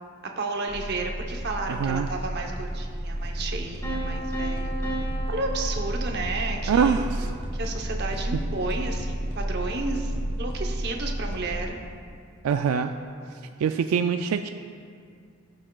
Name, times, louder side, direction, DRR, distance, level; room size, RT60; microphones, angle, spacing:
voice 1, 0.4-5.0 5.3-6.9 7.5-11.8, right 3 dB, 50° right, 2 dB, 0.8 m, -32 dB
sound 1, 0.7-11.6, right 1 dB, 30° right, 1.5 m, -31 dB
voice 2, 1.7-2.1 6.7-7.3 12.4-12.9 13.6-14.5, right 6 dB, 85° right, 7 dB, 0.3 m, -24 dB
Piano, 3.8-6.7, right 2 dB, 15° left, 1.9 m, -35 dB
17.5 x 6.2 x 2.3 m, 2.2 s
head